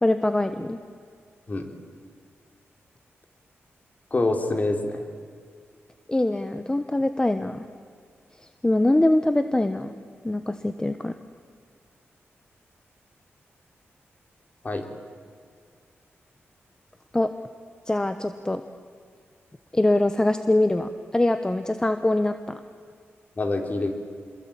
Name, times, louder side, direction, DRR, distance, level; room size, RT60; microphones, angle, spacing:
voice 1, 0.0-0.8 6.1-7.6 8.6-9.9 10.2-11.1 17.1-17.3 17.9-18.6 19.7-22.6, left 1 dB, 15° left, 9 dB, 1.0 m, -23 dB
voice 2, 4.1-5.0 14.6-14.9 23.4-23.9, left 2 dB, 35° left, 4 dB, 3.6 m, -25 dB
27.5 x 21.5 x 8.8 m, 2.2 s
cardioid pair, 90°, 5 cm